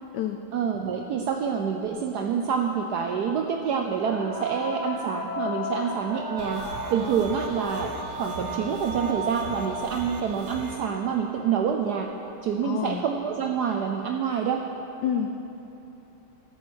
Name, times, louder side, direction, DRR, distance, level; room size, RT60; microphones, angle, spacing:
voice 1, 0.5-6.6 6.9-7.9 8.2-12.1 12.4-14.6, right 7 dB, 75° right, 3 dB, 0.9 m, -27 dB
sound 1, 4.0-10.1 11.6-11.7 12.5-12.6, left 1 dB, 15° right, 1.1 m, -34 dB
sound 2, 6.4-10.8, right 3 dB, 50° right, 1.2 m, -40 dB
voice 2, 12.6-13.0 15.0-15.3, left 9 dB, 85° left, 6 dB, 0.9 m, -28 dB
13.5 x 7.3 x 6.3 m, 3.0 s
omnidirectional pair, 2.3 m